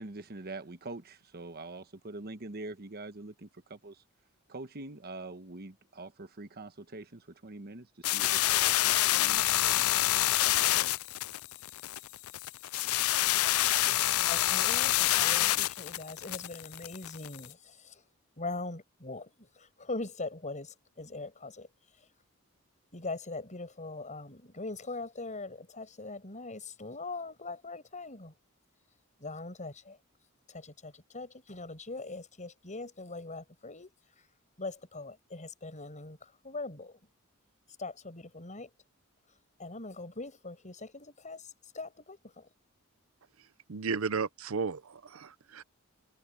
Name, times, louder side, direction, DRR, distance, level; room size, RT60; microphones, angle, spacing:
voice 1, 0.0-4.0 4.5-10.5, right 2 dB, 50° right, 1.2 m, -45 dB
sound 1, 8.0-17.5, left 15 dB, 85° left, 0.4 m, -27 dB
voice 2, 14.3-18.0 18.4-21.7 22.9-28.3 29.2-30.0 30.5-33.9 34.6-37.0 37.8-38.7 39.6-42.5, left 3 dB, 35° left, 6.3 m, -41 dB
voice 3, 43.7-45.6, right 5 dB, 75° right, 0.7 m, -34 dB
head